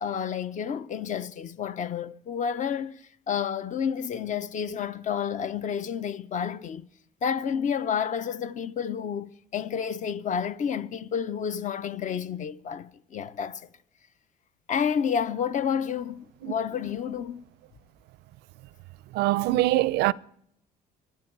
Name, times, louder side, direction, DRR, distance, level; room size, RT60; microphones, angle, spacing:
voice 1, 0.0-3.0 3.3-6.9 7.2-13.6 14.7-17.4, left 7 dB, 45° left, 0.9 m, -30 dB
voice 2, 19.1-20.1, right 16 dB, 80° right, 0.5 m, -23 dB
24.5 x 11.5 x 4.7 m
cardioid pair, 110°, 17 cm